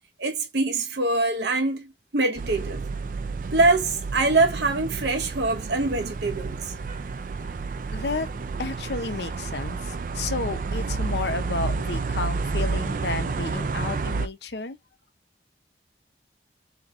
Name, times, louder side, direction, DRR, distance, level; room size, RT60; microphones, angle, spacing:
voice 1, 0.2-2.8 3.5-6.7, right 3 dB, 80° right, 0.9 m, -24 dB
sound 1, 2.4-14.3, right 4 dB, 45° right, 0.4 m, -30 dB
voice 2, 7.9-8.3 8.6-14.8, left 3 dB, 75° left, 0.7 m, -32 dB
3.5 x 2.9 x 3.7 m
head